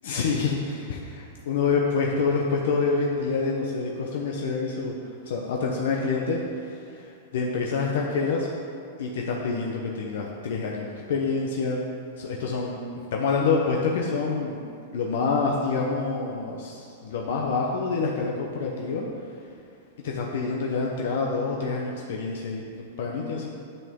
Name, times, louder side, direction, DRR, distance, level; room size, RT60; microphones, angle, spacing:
voice 1, 0.1-4.9 5.2-8.5 9.0-11.8 12.2-12.8 13.1-14.6 14.9-19.0 20.0-23.5, left 4 dB, 70° left, -1 dB, 0.9 m, -27 dB
9.5 x 5.4 x 3.7 m, 2.4 s
supercardioid pair, 150°, 0 cm